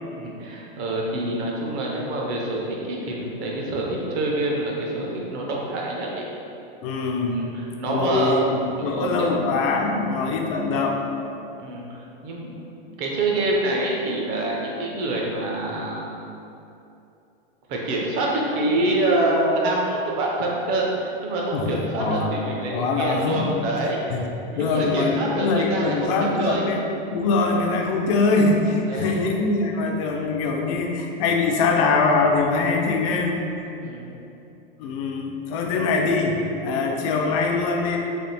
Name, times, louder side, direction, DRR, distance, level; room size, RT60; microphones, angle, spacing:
voice 1, 0.1-6.3 7.3-9.3 11.6-12.6 13.0-16.1 17.7-24.0 24.4-26.1 26.4-26.6 28.9-29.2 33.8-34.2, right 2 dB, 30° right, -2 dB, 0.6 m, -26 dB
voice 2, 6.8-7.5 7.8-11.1 21.5-22.3 22.7-23.6 24.1-24.3 24.6-26.8 27.1-33.5 34.8-38.0, left 3 dB, 35° left, 2 dB, 0.4 m, -23 dB
3.3 x 2.4 x 4.1 m, 2.8 s
supercardioid pair, 150°, 29 cm